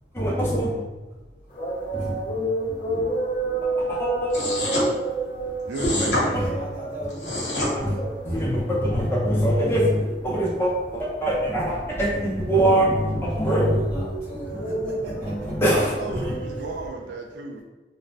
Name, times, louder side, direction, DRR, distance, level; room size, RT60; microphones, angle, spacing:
voice 1, 0.1-0.8 1.9-3.0 3.5-4.3 6.2-6.5 7.6-8.0 8.2-14.1 14.4-14.6 15.1-15.9 16.1-16.3, right 1 dB, 15° left, -6 dB, 0.5 m, -24 dB
sound 1, 1.5-16.9, right 2 dB, 50° left, 0.8 m, -31 dB
sound 2, 4.3-4.9 5.7-6.2 7.1-7.7, left 1 dB, 85° left, 1.2 m, -26 dB
voice 2, 5.7-6.6 15.6-17.6, right 3 dB, 80° right, 2 dB, 0.4 m, -33 dB
voice 3, 6.5-7.7 13.4-15.5, right 1 dB, 15° right, -15 dB, 0.8 m, -38 dB
2.5 x 2.1 x 3.2 m, 1.2 s
head